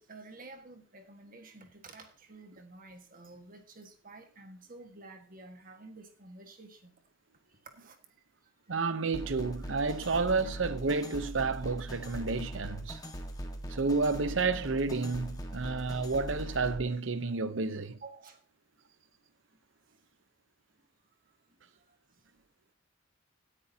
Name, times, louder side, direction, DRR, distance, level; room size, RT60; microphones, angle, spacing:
voice 1, 0.0-7.0 7.5-8.0 15.6-15.8 18.0-18.4 21.5-22.4, right 2 dB, 45° right, 1.6 m, -51 dB
voice 2, 8.7-13.0 13.7-18.0, right 4 dB, 70° right, 0.8 m, -31 dB
sound 1, 9.1-16.8, right 1 dB, 20° left, 1.5 m, -41 dB
17.5 x 9.9 x 2.8 m
head